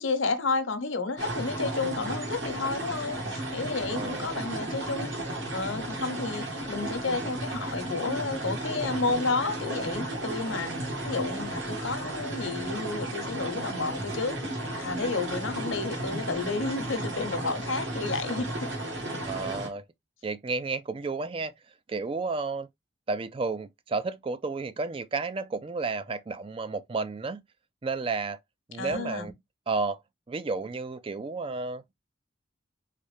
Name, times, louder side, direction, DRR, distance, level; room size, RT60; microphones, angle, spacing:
voice 1, 0.0-5.1 5.5-10.7 11.0-14.4 14.8-18.7 19.4-19.5 28.8-29.3, left 3 dB, 75° left, 0.9 m, -31 dB
sound 1, 1.2-19.7, right 1 dB, 65° right, 1.6 m, -34 dB
voice 2, 3.9-4.3 19.2-19.8 20.2-21.5 21.9-22.7 23.1-27.4 27.8-28.4 28.7-29.3 29.7-30.0 30.3-31.8, right 4 dB, 25° right, 0.3 m, -32 dB
4.1 x 3.5 x 3.1 m
head